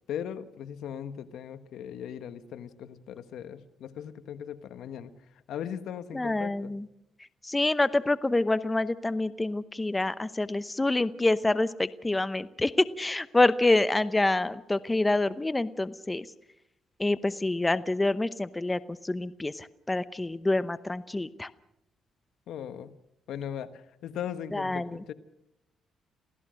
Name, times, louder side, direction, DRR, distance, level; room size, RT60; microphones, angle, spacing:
voice 1, 0.1-5.1 5.5-6.7 22.5-23.0 23.3-25.1, left 9 dB, 80° left, 12 dB, 1.2 m, -38 dB
voice 2, 6.1-6.9 7.4-16.3 17.0-21.5 24.5-25.0, left 2 dB, 15° left, 15 dB, 0.8 m, -27 dB
28.0 x 16.5 x 6.4 m, 0.81 s
cardioid pair, 90°, 0 cm